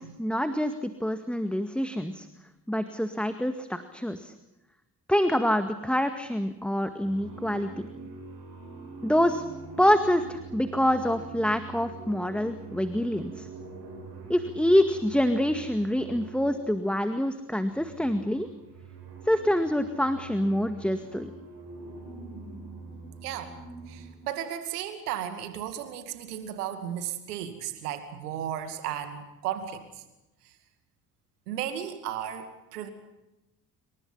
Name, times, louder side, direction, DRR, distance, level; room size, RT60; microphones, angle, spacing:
voice 1, 0.0-2.3 2.7-4.3 5.1-7.9 9.0-9.4 9.8-13.5 14.3-18.5 19.3-21.3, equal, ahead, 9 dB, 1.9 m, -26 dB
sound 1, 6.2-6.6 7.0-17.0 17.5-24.1, right 4 dB, 55° right, 7.9 m, -44 dB
voice 2, 23.2-23.6 23.9-30.0 30.4-30.5 31.5-32.9, right 10 dB, 75° right, 9 dB, 2.4 m, -35 dB
28.0 x 25.5 x 5.7 m, 0.95 s
figure-of-eight pair, 45°, 47 cm